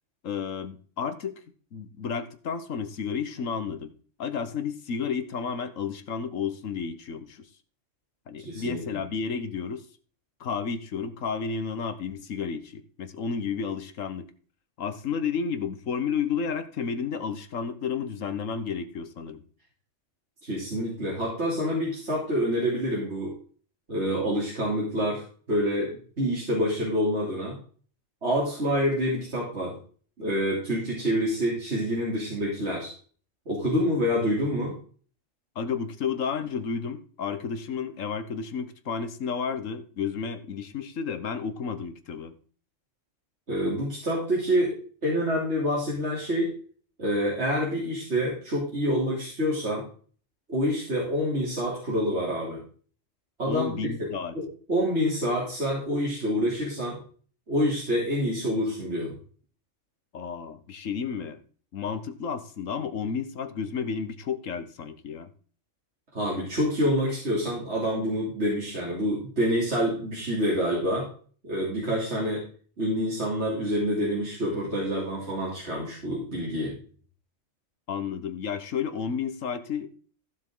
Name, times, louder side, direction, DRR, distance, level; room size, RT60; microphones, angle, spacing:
voice 1, 0.2-1.4 1.7-3.9 4.2-7.5 8.3-9.9 10.4-14.3 14.8-19.4 35.5-42.3 53.5-54.4 60.1-61.4 61.7-65.3 77.9-79.9, left 6 dB, 85° left, 10 dB, 1.5 m, -32 dB
voice 2, 8.4-8.8 20.4-23.3 23.9-27.6 28.2-29.8 30.2-32.9 33.5-34.7 43.5-46.6 47.0-49.9 50.5-52.6 53.4-54.1 54.4-57.0 57.5-59.1 66.1-71.1 71.4-72.4 72.8-76.8, equal, 60° right, -5 dB, 3.4 m, -27 dB
15.0 x 7.7 x 3.8 m, 0.42 s
omnidirectional pair, 1.3 m